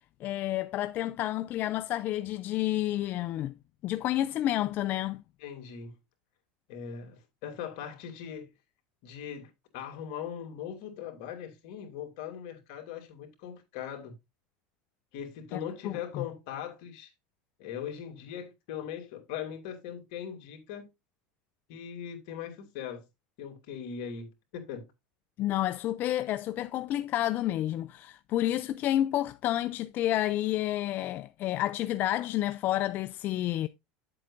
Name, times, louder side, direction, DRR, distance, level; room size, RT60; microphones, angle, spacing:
voice 1, 0.2-3.5 3.8-5.2 15.5-16.2 25.4-33.7, left 13 dB, 45° left, 0.4 m, -30 dB
voice 2, 5.4-5.9 6.7-8.5 9.0-14.2 15.1-17.1 17.6-20.9 21.7-23.0 23.4-24.9, left 8 dB, 70° left, 2.7 m, -40 dB
9.6 x 7.7 x 2.6 m
supercardioid pair, 115°, 5 cm